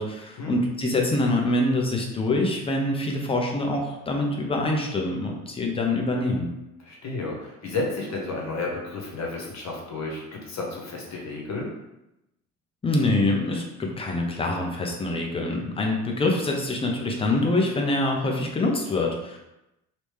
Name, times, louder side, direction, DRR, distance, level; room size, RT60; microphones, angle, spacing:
voice 1, 0.0-6.5 12.8-19.4, left 2 dB, 10° left, 0 dB, 0.7 m, -25 dB
voice 2, 6.8-11.7, left 3 dB, 35° left, -2 dB, 1.3 m, -32 dB
3.1 x 3.0 x 3.3 m, 0.91 s
figure-of-eight pair, 60°, 49 cm